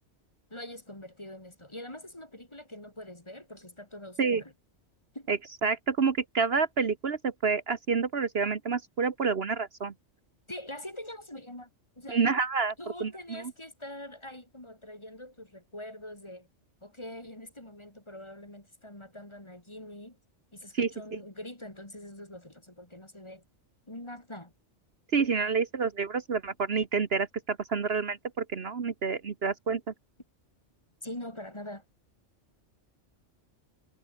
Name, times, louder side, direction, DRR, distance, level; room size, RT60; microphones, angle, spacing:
voice 1, 0.5-4.5 5.1-5.3 10.5-11.7 12.0-12.4 12.8-16.5 16.8-20.2 20.5-23.4 23.9-24.5 31.0-31.9, left 1 dB, 25° left, 3.5 m, -44 dB
voice 2, 5.3-9.9 12.1-12.7 13.0-13.4 20.7-20.9 25.1-29.9, right 5 dB, 55° right, 1.4 m, -28 dB
omnidirectional pair, 1.2 m